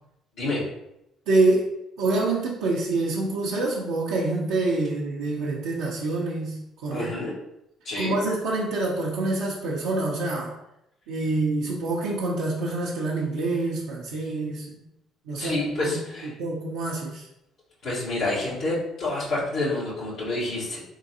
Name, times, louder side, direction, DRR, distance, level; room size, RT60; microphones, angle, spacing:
voice 1, 1.3-1.7 2.0-7.3 8.0-10.5 11.1-14.8 15.3-16.0 16.3-17.3, right 2 dB, 75° right, -4 dB, 0.7 m, -26 dB
voice 2, 6.9-7.3 7.8-8.2 15.4-16.3 17.8-20.8, left 2 dB, 70° left, -10 dB, 1.5 m, -28 dB
3.8 x 3.7 x 2.8 m, 0.83 s
hypercardioid pair, 55°, 0 cm